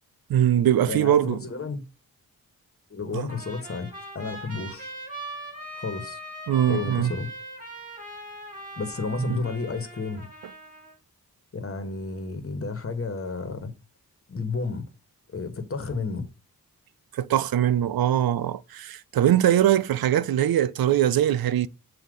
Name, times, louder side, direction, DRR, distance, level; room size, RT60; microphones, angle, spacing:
voice 1, 0.3-1.4 3.1-3.3 6.5-7.1 9.3-9.4 17.1-21.7, right 11 dB, 80° right, 0.5 m, -22 dB
voice 2, 0.9-1.8 2.9-4.9 5.7-6.2 6.7-7.3 8.8-10.3 11.5-13.7 14.3-14.8 15.3-16.3, left 4 dB, 40° left, 1.4 m, -31 dB
Trumpet, 3.3-11.0, right 1 dB, 25° right, 3.4 m, -40 dB
7.7 x 2.8 x 5.1 m
cardioid pair, 70°, 36 cm